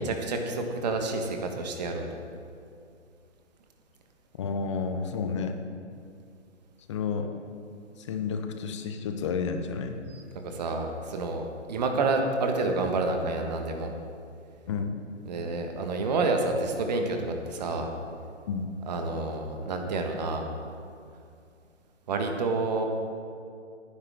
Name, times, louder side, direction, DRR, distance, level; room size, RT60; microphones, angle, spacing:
voice 1, 0.0-2.0 10.1-13.9 15.2-17.9 18.9-20.4 22.1-22.9, right 3 dB, 35° right, 4 dB, 1.5 m, -29 dB
voice 2, 4.4-5.6 6.9-7.3 8.0-10.0 14.7-15.0 18.5-18.7, left 5 dB, 25° left, 6 dB, 0.8 m, -31 dB
18.5 x 10.0 x 3.6 m, 2.4 s
figure-of-eight pair, 135°, 36 cm